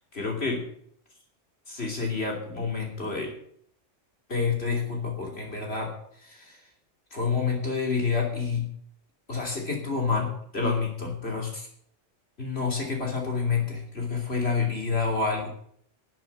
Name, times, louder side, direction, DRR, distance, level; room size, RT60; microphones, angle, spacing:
voice 1, 0.1-0.6 1.7-3.3 4.3-5.9 6.2-6.6 7.1-8.7 9.3-11.7 12.4-15.5, left 5 dB, 55° left, 0 dB, 3.2 m, -28 dB
13.0 x 7.8 x 8.0 m, 0.67 s
omnidirectional pair, 1.3 m